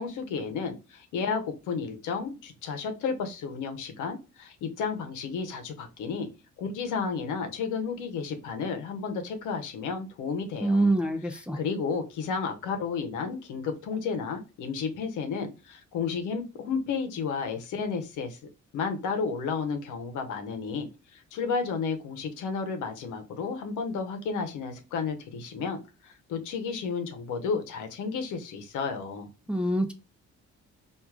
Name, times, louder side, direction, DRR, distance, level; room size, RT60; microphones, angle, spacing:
voice 1, 0.0-6.3 6.6-10.9 11.2-18.4 18.7-29.3, left 5 dB, 85° left, 0.9 m, -32 dB
voice 2, 10.6-11.6 29.5-29.9, right 1 dB, 5° right, 0.6 m, -25 dB
4.6 x 2.6 x 2.3 m
cardioid pair, 90°, 30 cm